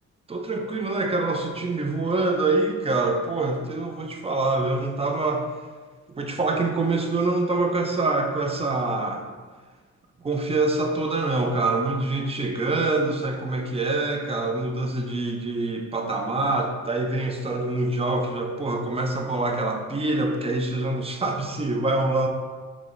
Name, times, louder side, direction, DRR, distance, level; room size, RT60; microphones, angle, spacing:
voice 1, 0.3-5.4 6.1-9.2 10.2-22.3, right 2 dB, 20° right, 3 dB, 0.4 m, -25 dB
5.7 x 3.0 x 2.5 m, 1.4 s
wide cardioid pair, 120°, 29 cm